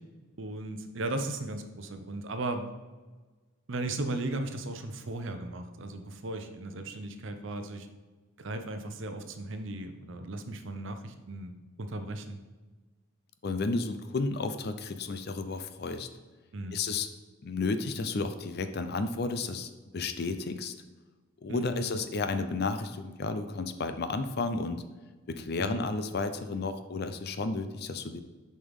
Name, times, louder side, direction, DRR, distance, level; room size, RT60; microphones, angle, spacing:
voice 1, 0.4-2.7 3.7-7.9 8.4-12.4 16.5-16.8 21.5-21.9 25.6-25.8, right 2 dB, 60° right, 7 dB, 0.7 m, -36 dB
voice 2, 13.4-16.1 16.7-17.1 17.4-20.7 21.4-24.8 25.3-28.2, left 3 dB, 50° left, 9 dB, 0.5 m, -32 dB
7.0 x 5.3 x 3.6 m, 1.3 s
head